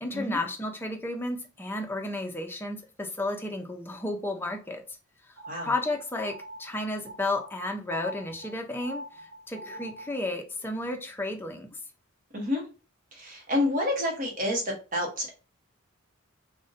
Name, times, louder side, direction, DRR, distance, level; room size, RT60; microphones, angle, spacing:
voice 1, 0.0-4.8 5.6-11.7, left 2 dB, 10° left, 0.4 m, -32 dB
sound 1, 5.4-10.3, right 1 dB, 80° right, 0.7 m, -43 dB
voice 2, 13.1-15.3, left 1 dB, 40° right, 0.8 m, -29 dB
2.5 x 2.1 x 3.8 m
head